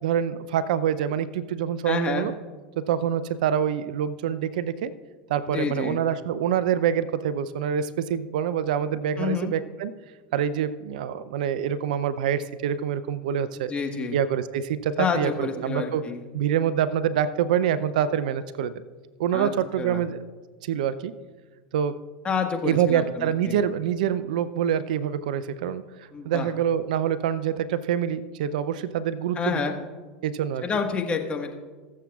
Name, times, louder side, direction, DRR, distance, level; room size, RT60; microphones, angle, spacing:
voice 1, 0.0-2.3 2.8-4.9 5.3-9.9 10.3-13.7 14.1-16.0 16.3-18.7 19.2-20.2 20.6-21.1 21.7-22.0 22.6-25.8 26.2-29.6 30.2-30.6, right 9 dB, 70° right, 15 dB, 0.5 m, -26 dB
voice 2, 1.8-2.3 5.5-6.0 9.2-9.5 13.5-14.2 15.0-16.2 19.3-19.5 19.8-20.0 22.2-23.6 26.1-26.5 29.3-29.8 30.6-31.5, left 5 dB, 25° left, 4 dB, 1.4 m, -28 dB
22.0 x 7.4 x 2.4 m, 1.4 s
hypercardioid pair, 90°, 5 cm